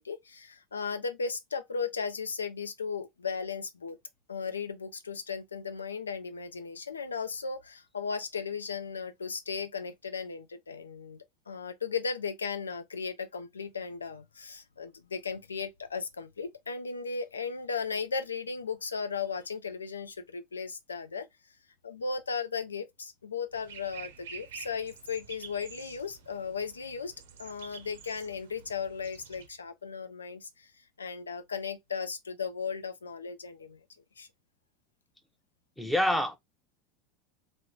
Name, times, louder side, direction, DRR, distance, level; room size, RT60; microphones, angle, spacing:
voice 1, 0.0-4.0 4.3-21.3 21.8-27.1 27.4-30.7 31.0-33.8 34.2-34.3, left 5 dB, 85° left, 0.4 m, -36 dB
sound 1, 23.5-29.5, right 7 dB, 75° right, 0.6 m, -49 dB
voice 2, 35.8-36.4, left 1 dB, 5° left, 0.6 m, -26 dB
2.9 x 2.1 x 3.6 m
hypercardioid pair, 80°, 0 cm